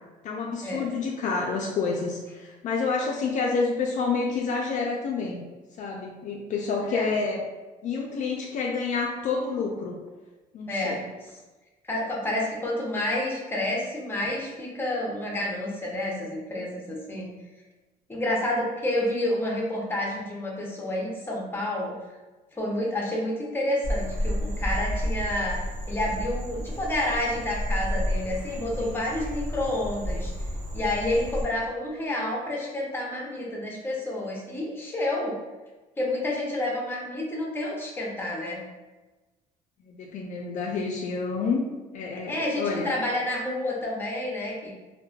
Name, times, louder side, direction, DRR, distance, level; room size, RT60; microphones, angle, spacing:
voice 1, 0.2-5.4 5.8-7.5 7.8-10.0 10.5-11.0 28.8-29.0 39.9-41.6 41.9-42.9, left 4 dB, 55° left, -1 dB, 0.4 m, -28 dB
voice 2, 10.7-11.3 11.9-17.3 18.1-21.9 22.5-25.6 25.9-30.3 30.7-35.4 36.0-38.6 42.1-44.7, left 1 dB, 15° left, -2 dB, 0.7 m, -29 dB
Frog, 23.8-31.4, equal, 55° right, 0.8 m, -31 dB
2.9 x 2.1 x 2.3 m, 1.2 s
cardioid pair, 105°, 16 cm